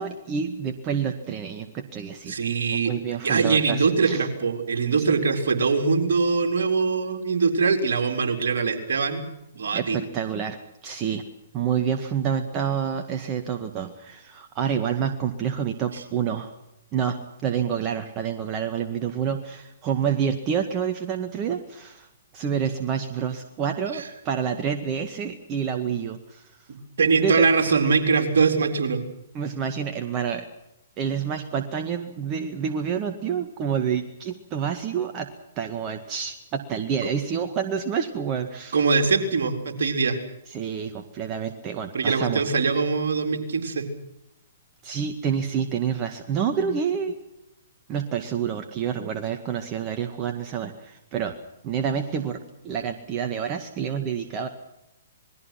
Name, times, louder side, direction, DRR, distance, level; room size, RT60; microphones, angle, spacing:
voice 1, 0.0-2.4 2.8-4.2 9.7-11.2 11.5-16.5 16.9-17.2 17.4-22.1 22.3-26.4 27.1-27.5 29.3-30.4 31.0-35.3 35.6-38.8 40.5-42.4 44.8-47.2 47.9-51.3 51.6-54.5, right 7 dB, 30° right, 6 dB, 2.0 m, -28 dB
voice 2, 2.3-2.9 3.2-9.2 9.5-10.0 23.9-24.0 26.7-29.0 38.7-40.2 41.9-43.9, right 4 dB, 65° right, 5 dB, 4.1 m, -22 dB
27.5 x 21.0 x 6.0 m, 0.86 s
figure-of-eight pair, 120°, 0 cm